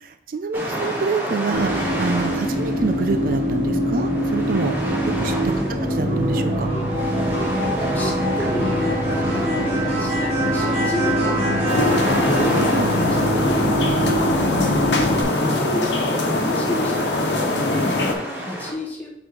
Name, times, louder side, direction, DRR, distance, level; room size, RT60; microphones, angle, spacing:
voice 1, 0.0-4.8 5.2-5.3 5.9-6.7 12.6-12.9, right 4 dB, 50° right, 8 dB, 0.4 m, -26 dB
sound 1, 0.5-18.7, equal, 10° right, 1.1 m, -32 dB
sound 2, 1.5-15.2, equal, 35° right, 1.8 m, -23 dB
voice 2, 5.5-5.9 7.5-15.0 15.3-19.1, left 1 dB, 10° left, -4 dB, 1.0 m, -31 dB
sound 3, 11.7-18.1, left 2 dB, 85° left, 1.0 m, -22 dB
4.7 x 4.0 x 5.1 m, 0.80 s
head